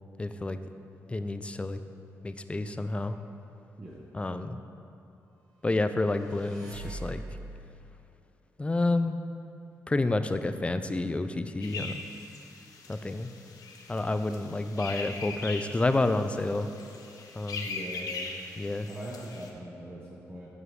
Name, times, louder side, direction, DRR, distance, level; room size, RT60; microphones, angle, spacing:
voice 1, 0.2-0.6 1.1-1.8 2.2-3.2 4.1-4.6 5.6-7.2 8.6-9.1 9.9-12.0 12.9-13.3 13.9-16.7 17.3-17.7 18.6-18.9, left 2 dB, 20° left, 10 dB, 0.3 m, -29 dB
sound 1, 5.9-7.6, right 2 dB, 75° right, 1.3 m, -42 dB
sound 2, 11.6-19.5, left 4 dB, 75° left, 0.6 m, -41 dB
voice 2, 17.6-18.1 18.9-20.5, right 1 dB, 30° right, -5 dB, 0.8 m, -41 dB
7.5 x 4.8 x 3.2 m, 2.7 s
cardioid pair, 60°, 6 cm